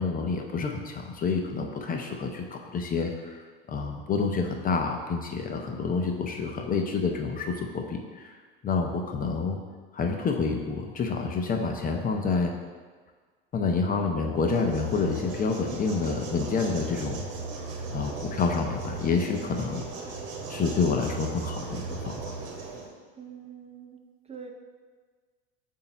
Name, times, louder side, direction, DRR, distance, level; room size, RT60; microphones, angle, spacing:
voice 1, 0.0-3.4 3.7-8.4 8.6-9.6 9.9-12.5 13.5-17.2 17.9-19.8 20.5-22.4, left 4 dB, 30° left, 3 dB, 0.7 m, -28 dB
sound 1, 14.4-22.9, right 3 dB, 60° right, 1.3 m, -37 dB
voice 2, 23.1-24.0 24.3-24.5, right 7 dB, 20° right, 2 dB, 0.7 m, -44 dB
6.9 x 2.8 x 5.5 m, 1.5 s
hypercardioid pair, 90°, 29 cm